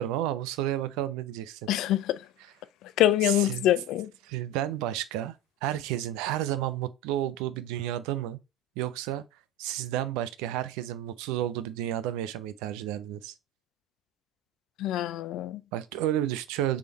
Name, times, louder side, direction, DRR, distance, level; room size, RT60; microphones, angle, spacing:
voice 1, 0.0-1.7 3.2-3.7 4.2-5.3 5.6-8.4 8.8-9.2 9.6-13.3 15.7-16.8, right 12 dB, 85° right, 0.3 m, -31 dB
voice 2, 1.7-2.2 3.0-4.1 14.8-15.6, left 13 dB, 80° left, 0.3 m, -25 dB
3.5 x 3.3 x 4.2 m
hypercardioid pair, 40°, 0 cm